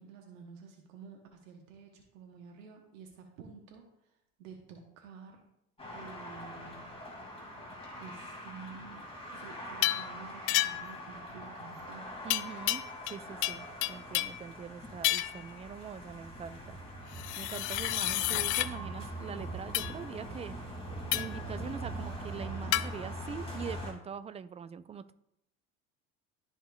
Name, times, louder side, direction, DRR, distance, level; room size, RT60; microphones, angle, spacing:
voice 1, 0.0-3.8 4.4-5.4 5.9-7.0 8.0-9.0 9.3-12.1, right 6 dB, 75° right, 1 dB, 1.3 m, -50 dB
sound 1, 5.8-23.9, right 1 dB, 15° left, 2.4 m, -43 dB
sound 2, 9.8-10.1 10.5-11.0 12.3-13.2 13.4-14.4 15.0-15.4 17.1-18.7 19.7-19.9 21.1-21.4 22.7-22.9, left 17 dB, 60° left, 0.5 m, -30 dB
voice 2, 12.2-16.8 17.4-20.6 21.1-25.1, right 7 dB, 15° right, 13 dB, 0.3 m, -43 dB
13.0 x 4.4 x 2.3 m, 0.80 s
hypercardioid pair, 70°, 39 cm